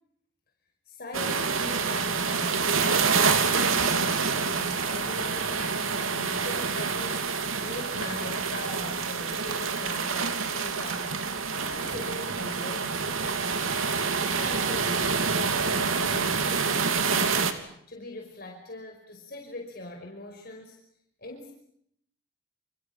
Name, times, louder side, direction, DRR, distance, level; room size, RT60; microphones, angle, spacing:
voice 1, 0.9-2.9 3.2-7.3 7.6-11.2 11.5-13.7 14.2-17.5 17.9-20.8 21.2-21.5, left 1 dB, 45° left, 2 dB, 5.3 m, -41 dB
sound 1, 1.1-17.5, right 5 dB, 85° right, 3.2 m, -27 dB
29.5 x 28.5 x 6.1 m, 0.69 s
head